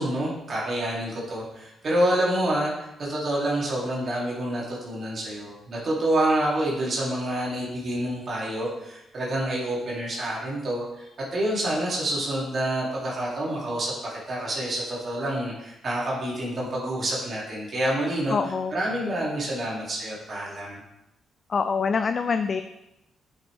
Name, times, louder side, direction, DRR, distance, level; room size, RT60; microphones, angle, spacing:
voice 1, 0.0-18.4 18.7-20.8, right 1 dB, 50° right, -5 dB, 2.5 m, -28 dB
voice 2, 18.3-18.7 21.5-22.6, left 5 dB, 50° left, 9 dB, 0.4 m, -25 dB
7.7 x 5.6 x 3.3 m, 0.90 s
supercardioid pair, 60°, 0 cm